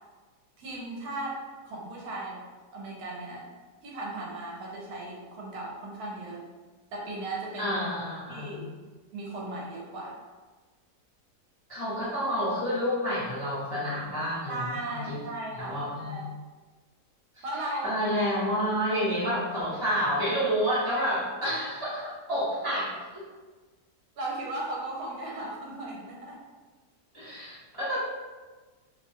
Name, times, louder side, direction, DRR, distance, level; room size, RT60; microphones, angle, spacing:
voice 1, 0.6-1.4 1.6-2.4 2.7-3.4 3.8-6.4 6.9-7.7 8.3-8.6 9.1-10.2 14.5-16.3 17.4-18.0 18.9-19.0 20.9-21.0 24.2-26.4, right 2 dB, 75° right, -3 dB, 1.1 m, -36 dB
voice 2, 7.6-8.7 11.7-15.2 15.5-16.1 17.4-17.5 17.8-22.9 27.1-28.0, equal, 20° left, -13 dB, 0.8 m, -29 dB
2.8 x 2.2 x 2.7 m, 1.3 s
omnidirectional pair, 1.7 m